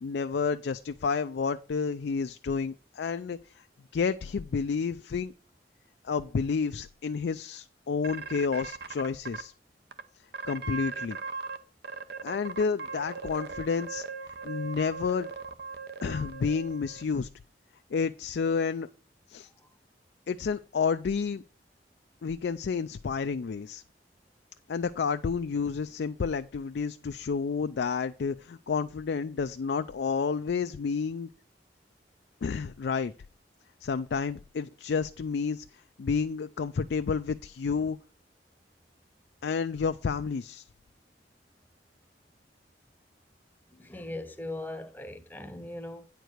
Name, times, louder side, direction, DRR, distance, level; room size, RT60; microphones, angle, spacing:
voice 1, 0.0-3.6 3.9-5.3 6.0-9.5 10.5-11.2 12.2-14.0 14.4-15.3 16.0-17.3 17.9-18.9 19.3-19.5 20.3-21.4 22.2-23.8 24.7-31.3 32.4-33.1 33.8-38.0 39.4-40.7, left 5 dB, 70° left, 0.4 m, -30 dB
sound 1, 8.0-9.4 9.9-10.0 10.3-11.6 11.8-17.0, right 4 dB, 60° right, 0.8 m, -38 dB
voice 2, 43.8-46.0, left 1 dB, 10° left, 0.9 m, -39 dB
9.2 x 4.6 x 6.5 m
head